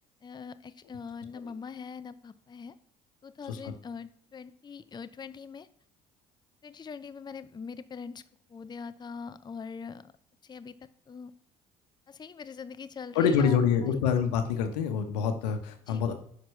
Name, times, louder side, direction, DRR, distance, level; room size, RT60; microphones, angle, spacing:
voice 1, 0.2-2.7 3.2-5.7 6.6-8.2 8.5-10.1 10.4-11.3 12.1-14.0 15.9-16.0, left 5 dB, 20° left, 13 dB, 0.5 m, -42 dB
voice 2, 13.1-16.1, left 7 dB, 90° left, 8 dB, 1.0 m, -26 dB
10.0 x 5.9 x 3.2 m, 0.65 s
hypercardioid pair, 65°, 20 cm